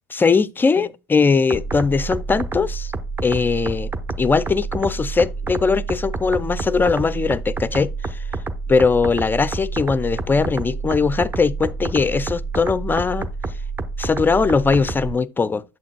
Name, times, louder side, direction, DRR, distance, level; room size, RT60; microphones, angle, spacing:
voice 1, 0.1-2.9 3.2-3.9 4.2-8.2 8.7-13.3 14.0-15.6, left 4 dB, 20° left, 0.4 m, -20 dB
sound 1, 1.5-15.1, right 3 dB, 20° right, 0.8 m, -28 dB
7.2 x 6.0 x 2.2 m
hypercardioid pair, 85°, 11 cm